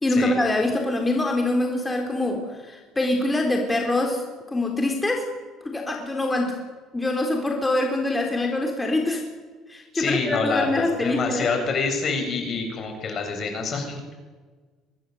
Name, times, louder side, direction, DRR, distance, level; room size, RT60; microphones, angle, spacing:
voice 1, 0.0-4.2 4.5-5.3 5.6-6.6 6.9-9.2 9.7-11.5, left 2 dB, 15° left, 2 dB, 4.0 m, -24 dB
voice 2, 9.9-14.1, left 4 dB, 50° left, 4 dB, 7.7 m, -27 dB
24.0 x 20.0 x 8.0 m, 1.4 s
supercardioid pair, 85°, 0 cm